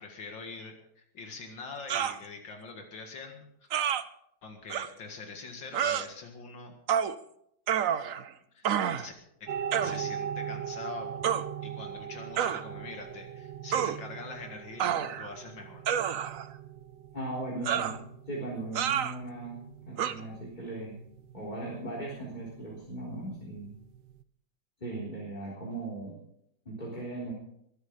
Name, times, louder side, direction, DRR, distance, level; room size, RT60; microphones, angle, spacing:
voice 1, 0.0-3.7 4.4-6.7 8.5-8.6 8.9-9.1 9.4-9.5 9.8-11.1 11.4-15.9, left 4 dB, 80° left, 3 dB, 2.7 m, -44 dB
sound 1, 1.9-2.2 3.7-4.0 4.7-4.9 5.7-6.1 6.9-7.2 7.7-8.3 8.6-9.1 9.7-10.0 11.2-11.4 12.4-12.6 13.7-14.0 14.8-15.3 15.9-16.5 17.7-18.0 18.8-19.2 20.0-20.1, right 9 dB, 60° right, 1.0 m, -28 dB
sound 2, 9.5-24.2, right 8 dB, 80° right, 1.5 m, -41 dB
voice 2, 17.1-21.0 21.3-23.7 24.8-26.2 26.7-27.3, right 2 dB, 25° left, -3 dB, 3.9 m, -38 dB
22.0 x 9.6 x 5.3 m, 0.73 s
omnidirectional pair, 2.0 m